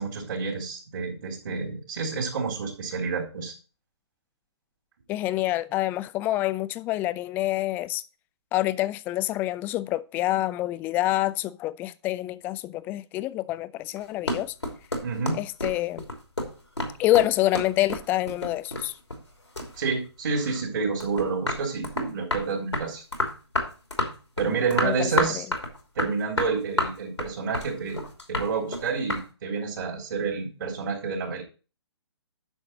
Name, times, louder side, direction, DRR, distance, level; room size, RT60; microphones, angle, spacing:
voice 1, 0.0-3.5 15.0-15.4 19.8-23.0 24.4-25.5 26.0-28.0 28.3-31.4, right 4 dB, 50° right, 3.6 m, -29 dB
voice 2, 5.1-8.0 8.5-14.5 15.4-16.0 17.0-18.9 24.8-25.4, left 15 dB, 15° left, 0.3 m, -27 dB
sound 1, 14.0-19.3 19.6-20.6 21.0-29.3, left 1 dB, 85° left, 3.1 m, -30 dB
10.5 x 6.8 x 4.3 m
figure-of-eight pair, 130°, 14 cm